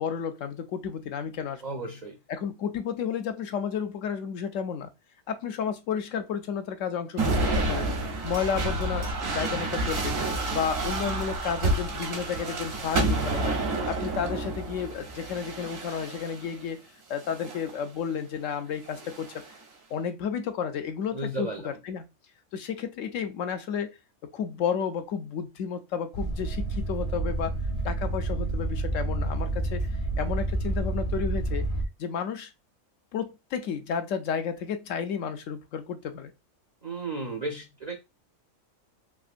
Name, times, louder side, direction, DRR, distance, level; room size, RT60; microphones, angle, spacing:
voice 1, 0.0-1.6 2.3-4.9 5.3-7.9 8.2-10.2 10.5-13.5 13.9-16.8 17.1-19.3 19.9-22.1 22.5-23.9 24.3-27.5 27.8-29.8 30.2-31.6 32.0-32.5 33.1-36.3, left 7 dB, 75° left, 0.9 m, -32 dB
voice 2, 1.6-2.2 21.1-21.8 36.8-37.9, right 2 dB, 45° right, 0.5 m, -34 dB
sound 1, 7.2-16.5 17.2-17.8 18.9-19.5, right 2 dB, 75° right, 1.3 m, -29 dB
sound 2, 26.1-31.8, right 2 dB, 50° left, 0.8 m, -29 dB
3.5 x 2.9 x 2.4 m
omnidirectional pair, 1.4 m